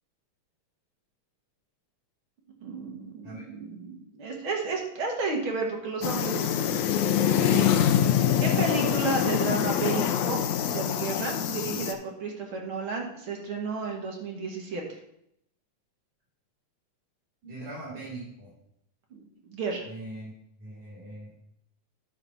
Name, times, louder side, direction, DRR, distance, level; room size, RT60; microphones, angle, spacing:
voice 1, 2.6-7.9 8.4-15.0 19.1-19.9, right 3 dB, 50° right, 0 dB, 1.9 m, -33 dB
sound 1, 6.0-11.9, left 9 dB, 80° left, 2.0 m, -25 dB
voice 2, 17.4-18.5 19.8-20.3 20.6-21.4, right 2 dB, 75° right, -11 dB, 5.0 m, -41 dB
11.0 x 3.9 x 5.7 m, 0.75 s
omnidirectional pair, 3.4 m